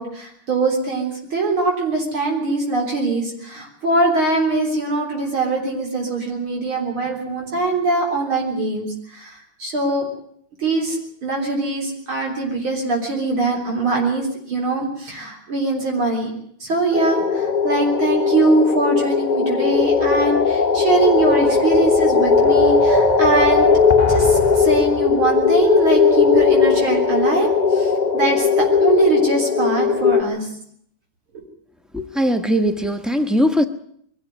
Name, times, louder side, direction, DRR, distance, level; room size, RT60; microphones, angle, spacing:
voice 1, 0.0-10.1 10.6-16.3 16.6-23.7 24.1-30.5, right 3 dB, 70° right, 4.5 m, -22 dB
sound 1, 16.9-30.2, left 5 dB, 30° left, 0.8 m, -17 dB
voice 2, 31.9-33.6, equal, ahead, 0.4 m, -19 dB
22.5 x 13.0 x 9.5 m
omnidirectional pair, 2.4 m